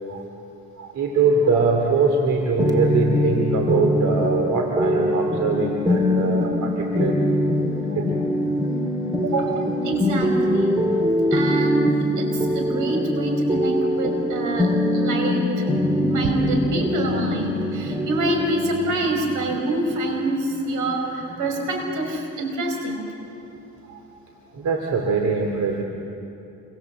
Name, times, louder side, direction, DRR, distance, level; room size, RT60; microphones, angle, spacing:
voice 1, 0.8-7.1 7.9-8.0 23.9-24.0 24.6-25.8, right 4 dB, 70° right, 2 dB, 2.9 m, -22 dB
sound 1, 2.6-22.2, left 1 dB, 15° right, 2.6 m, -23 dB
voice 2, 9.2-10.8 11.3-23.1, right 2 dB, 85° right, 4 dB, 5.3 m, -26 dB
28.0 x 25.0 x 7.9 m, 2.8 s
cardioid pair, 90°, 30 cm